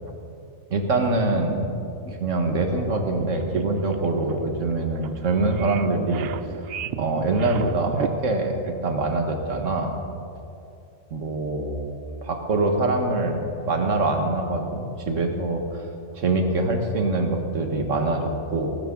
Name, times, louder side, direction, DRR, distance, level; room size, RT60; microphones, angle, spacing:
voice 1, 0.7-1.7 2.1-6.3 7.0-9.9 11.1-12.0 12.2-13.4 13.7-15.8 16.1-18.8, right 2 dB, 90° right, 4 dB, 1.8 m, -24 dB
sound 1, 2.8-8.1, right 10 dB, 65° right, 0.7 m, -35 dB
19.0 x 15.0 x 3.8 m, 2.7 s
omnidirectional pair, 1.3 m